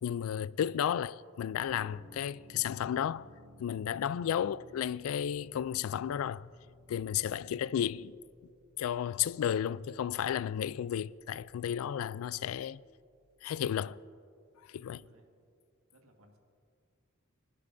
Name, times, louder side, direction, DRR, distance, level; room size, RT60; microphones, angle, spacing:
voice 1, 0.0-3.3 3.6-6.5 6.9-8.2 8.8-12.8 13.4-14.0 14.7-15.0, left 9 dB, 80° left, 0.3 m, -33 dB
sound 1, 1.7-13.3, left 1 dB, 10° left, 2.4 m, -59 dB
voice 2, 13.7-14.1 14.8-15.5 15.9-16.4, equal, 85° right, 1.7 m, -64 dB
26.5 x 11.5 x 2.6 m
head